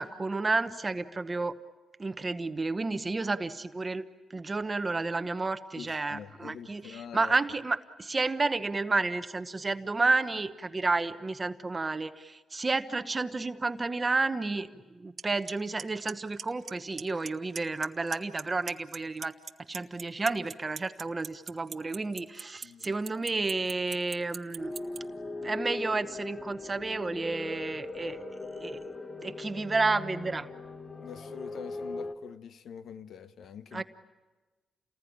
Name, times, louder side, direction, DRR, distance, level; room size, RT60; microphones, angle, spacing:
voice 1, 0.0-1.5 2.0-4.0 4.3-19.3 19.7-24.7 25.4-28.2 28.6-28.8 29.2-30.5 33.7-33.8, right 3 dB, 25° right, 1.0 m, -31 dB
voice 2, 5.8-7.4 22.6-22.9 31.0-33.8, left 8 dB, 70° left, 1.0 m, -45 dB
Clock, 15.2-15.3 15.5-15.8 16.1-16.7 17.0-17.3 17.6-18.4 18.7-25.0, right 6 dB, 50° right, 1.1 m, -38 dB
sound 1, 24.6-32.1, left 2 dB, 25° left, 1.2 m, -39 dB
29.0 x 20.0 x 10.0 m
cardioid pair, 95°, 0 cm